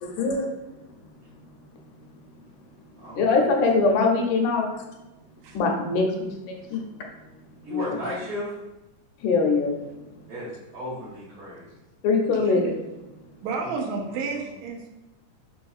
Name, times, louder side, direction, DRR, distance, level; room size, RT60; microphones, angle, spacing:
voice 1, 0.0-0.5 3.1-4.7 5.5-6.9 7.7-7.9 9.2-9.8 12.0-12.7, left 3 dB, 80° left, 2 dB, 2.0 m, -22 dB
voice 2, 3.0-3.5 7.6-8.6 10.3-11.8 13.6-13.7 14.0-14.4, left 1 dB, 75° right, -9 dB, 1.3 m, -35 dB
voice 3, 13.4-14.9, right 4 dB, 90° right, 1 dB, 2.2 m, -31 dB
5.3 x 2.9 x 2.3 m, 0.99 s
omnidirectional pair, 3.6 m